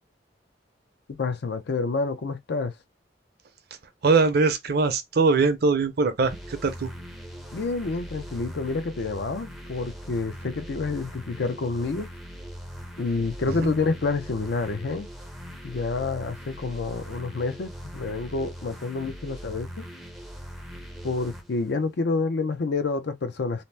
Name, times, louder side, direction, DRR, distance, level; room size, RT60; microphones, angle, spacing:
voice 1, 1.1-2.7 7.5-12.1 13.0-15.1 15.6-19.8 21.0-23.6, left 3 dB, 65° left, 0.5 m, -28 dB
voice 2, 4.0-6.9 13.5-13.7, right 4 dB, 55° right, 0.6 m, -22 dB
sound 1, 6.2-21.7, equal, ahead, 0.5 m, -41 dB
2.8 x 2.0 x 3.2 m
head